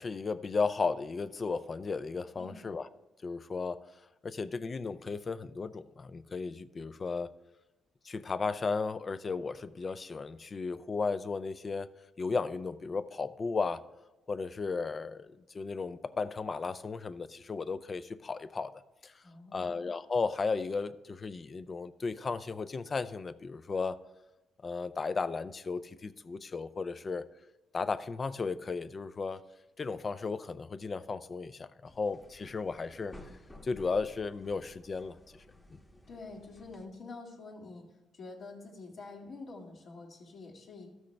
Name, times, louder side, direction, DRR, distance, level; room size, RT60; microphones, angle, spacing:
voice 1, 0.0-2.9 3.2-3.8 4.2-7.3 8.0-11.9 12.2-13.8 14.3-18.7 19.0-19.2 19.5-24.0 24.6-27.2 27.7-29.4 29.8-33.1 33.6-35.2 35.7-35.8, left 4 dB, 35° left, 14 dB, 0.4 m, -35 dB
voice 2, 19.2-19.7 36.1-37.9 38.1-40.9, left 3 dB, 55° left, 0 dB, 1.9 m, -47 dB
sound 1, 31.8-36.9, left 1 dB, 15° left, 1.2 m, -54 dB
13.5 x 6.3 x 3.3 m, 1.0 s
cardioid pair, 90°, 0 cm